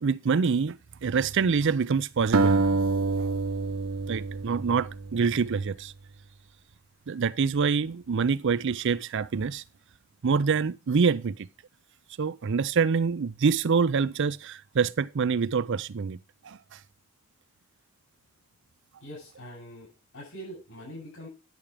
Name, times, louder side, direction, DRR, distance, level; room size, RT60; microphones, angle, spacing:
voice 1, 0.0-2.6 3.2-3.3 4.1-5.9 7.1-9.6 10.2-11.5 12.2-16.2 16.4-16.8, right 5 dB, 60° right, 0.5 m, -26 dB
sound 1, 2.3-5.5, right 3 dB, 85° right, 0.8 m, -27 dB
voice 2, 19.0-19.9 20.1-21.3, equal, 80° left, 7.6 m, -43 dB
10.5 x 7.2 x 4.9 m
head